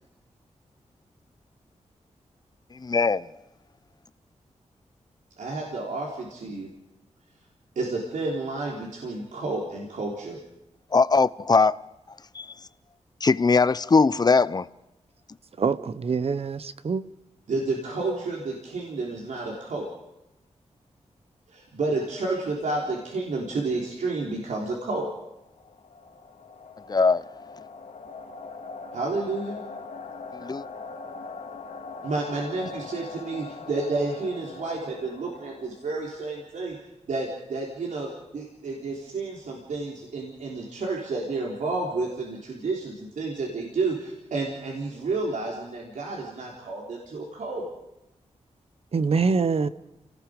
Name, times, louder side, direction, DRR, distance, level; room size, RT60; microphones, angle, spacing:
voice 1, 2.8-3.3 10.9-11.8 12.3-12.5 13.2-14.7 26.9-27.2 30.4-30.6, left 4 dB, 35° left, 0.7 m, -20 dB
voice 2, 5.4-6.7 7.8-10.4 17.5-19.9 21.5-25.1 28.9-29.6 32.0-36.8 37.1-47.7, right 3 dB, 85° right, 3.8 m, -30 dB
voice 3, 15.6-17.0 48.9-49.7, right 5 dB, 55° right, 1.0 m, -24 dB
sound 1, 25.2-36.1, left 4 dB, 85° left, 2.7 m, -41 dB
29.5 x 19.0 x 5.2 m
wide cardioid pair, 110°, 12 cm